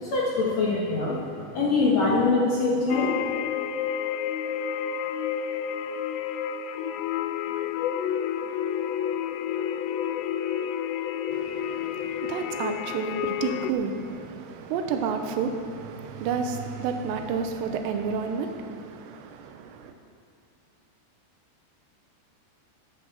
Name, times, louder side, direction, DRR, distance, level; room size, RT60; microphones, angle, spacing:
voice 1, 0.0-1.3 1.5-3.1, left 3 dB, 55° left, 2.0 m, -23 dB
sound 1, 2.9-13.7, left 9 dB, 85° left, 2.8 m, -30 dB
voice 2, 11.3-19.9, right 5 dB, 90° right, 3.0 m, -31 dB
12.5 x 9.4 x 6.7 m
omnidirectional pair, 4.9 m